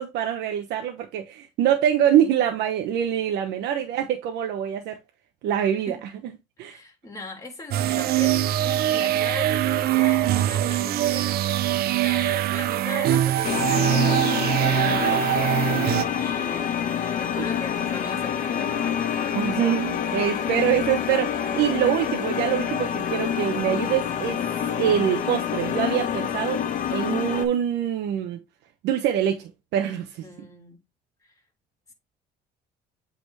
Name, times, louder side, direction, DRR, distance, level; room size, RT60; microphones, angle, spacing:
voice 1, 0.0-5.0 5.4-6.0 6.6-6.8 19.3-24.4 24.8-26.6 26.9-28.4 28.8-30.3, right 10 dB, 85° right, 1.1 m, -24 dB
voice 2, 5.7-6.1 6.6-16.8 17.0-19.9 30.2-30.8 31.2-31.3, left 2 dB, 20° left, 3.3 m, -39 dB
sound 1, 7.7-16.0, right 12 dB, 65° right, 0.5 m, -22 dB
sound 2, 13.4-27.5, left 8 dB, 50° left, 1.3 m, -27 dB
8.2 x 4.1 x 3.3 m
cardioid pair, 110°, 17 cm